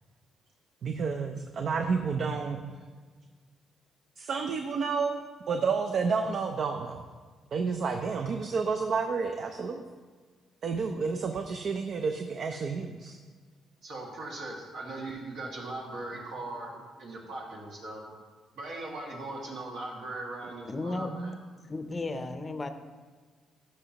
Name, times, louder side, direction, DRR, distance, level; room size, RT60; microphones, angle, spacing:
voice 1, 0.8-2.6 4.2-5.2 5.5-7.1 7.5-9.8 10.6-13.2 21.1-21.4, right 5 dB, 60° right, 5 dB, 0.5 m, -30 dB
voice 2, 13.8-18.0 18.5-21.3, right 2 dB, 75° right, -3 dB, 2.0 m, -39 dB
voice 3, 20.7-21.1 21.7-22.7, left 2 dB, 25° left, 8 dB, 0.6 m, -34 dB
12.0 x 5.5 x 2.9 m, 1.5 s
cardioid pair, 90°, 0 cm